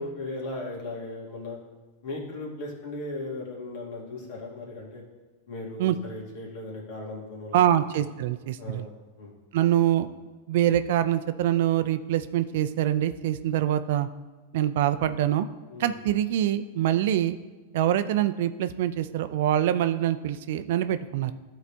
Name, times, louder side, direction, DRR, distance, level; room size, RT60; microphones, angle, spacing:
voice 1, 0.0-1.6 2.0-5.0 5.5-7.6 8.6-8.9 9.2-9.4 15.7-15.9, left 2 dB, 60° left, -2 dB, 2.3 m, -37 dB
voice 2, 7.5-8.9 9.5-10.1 10.5-14.1 14.5-15.5 15.8-17.4 17.7-21.3, right 11 dB, 65° right, 12 dB, 0.4 m, -24 dB
12.0 x 4.1 x 3.5 m, 1.3 s
hypercardioid pair, 110°, 0 cm